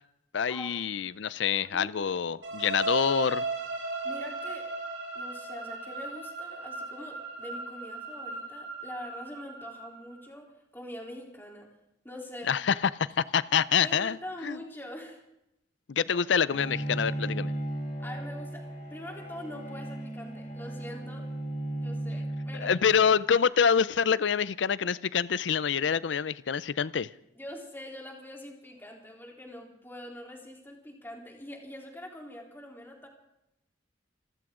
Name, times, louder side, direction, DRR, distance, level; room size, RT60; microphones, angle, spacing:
voice 1, 0.3-3.4 12.5-14.2 14.4-14.6 15.9-17.5 22.6-27.1, left 7 dB, 70° left, 18 dB, 0.5 m, -26 dB
voice 2, 1.7-2.1 4.0-4.7 5.2-11.7 12.0-12.5 13.8-15.2 16.1-16.2 18.0-21.3 21.8-22.7 27.4-33.1, left 1 dB, 10° left, 0 dB, 3.5 m, -44 dB
sound 1, 2.4-10.2, right 3 dB, 75° right, 7.5 m, -37 dB
Bowed string instrument, 16.5-23.2, right 1 dB, 55° left, 6.0 m, -36 dB
27.0 x 14.0 x 3.8 m, 0.82 s
head